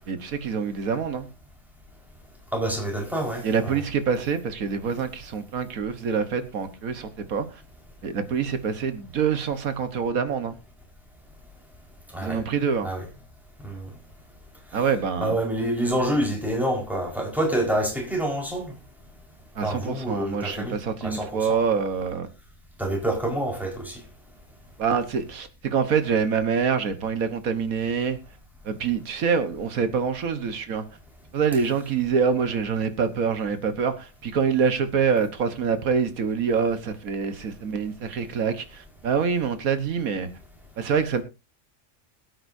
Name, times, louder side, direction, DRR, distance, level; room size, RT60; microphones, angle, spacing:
voice 1, 0.1-1.3 3.4-7.6 8.0-10.6 12.2-12.9 14.7-15.3 19.5-22.3 24.8-28.2 28.6-30.8 31.3-40.3 40.8-41.2, right 6 dB, 85° right, 1.7 m, -25 dB
voice 2, 2.5-3.8 12.1-12.4 12.8-13.0 13.6-13.9 15.2-18.7 19.6-21.6 22.8-24.0, right 1 dB, ahead, 4.6 m, -27 dB
21.5 x 8.8 x 2.7 m
omnidirectional pair, 1.4 m